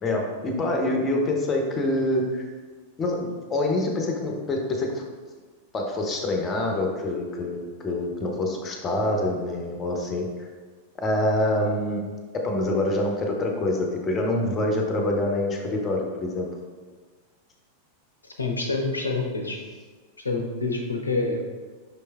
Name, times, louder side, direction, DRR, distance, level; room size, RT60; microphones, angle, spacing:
voice 1, 0.0-2.4 3.0-5.0 5.7-10.5 11.0-12.1 12.4-16.5, left 1 dB, 25° left, 1 dB, 0.7 m, -26 dB
voice 2, 18.2-19.6 20.2-21.4, left 3 dB, 80° left, 2 dB, 0.6 m, -27 dB
5.6 x 3.2 x 2.2 m, 1.4 s
figure-of-eight pair, 90°, 0 cm